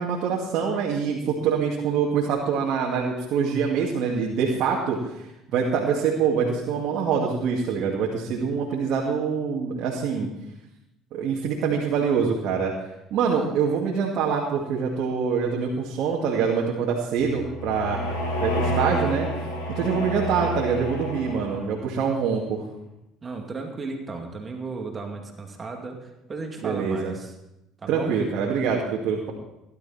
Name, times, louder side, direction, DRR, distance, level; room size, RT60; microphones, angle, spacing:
voice 1, 0.0-5.0 5.5-10.3 11.1-12.7 13.1-18.0 18.4-19.3 19.7-22.7 26.6-27.1 27.9-29.3, right 6 dB, 65° right, -3 dB, 2.3 m, -25 dB
sound 1, 17.2-21.8, equal, 85° left, 4.9 m, -29 dB
voice 2, 23.2-27.3 27.8-28.2, right 3 dB, 30° right, 2 dB, 2.5 m, -35 dB
17.0 x 12.0 x 4.3 m, 0.89 s
supercardioid pair, 80°, 0 cm